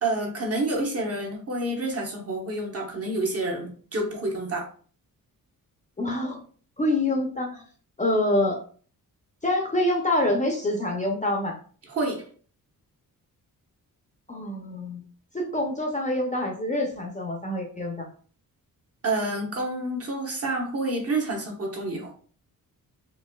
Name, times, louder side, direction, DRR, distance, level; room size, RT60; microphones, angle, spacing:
voice 1, 0.0-4.7 11.9-12.2 19.0-22.1, right 2 dB, 40° right, 0 dB, 1.1 m, -28 dB
voice 2, 6.0-6.4 6.8-7.6 8.0-8.6 9.4-11.5 14.3-15.0 15.3-18.1, left 1 dB, 20° left, 1 dB, 0.6 m, -26 dB
4.5 x 2.6 x 2.3 m, 0.43 s
wide cardioid pair, 130°, 35 cm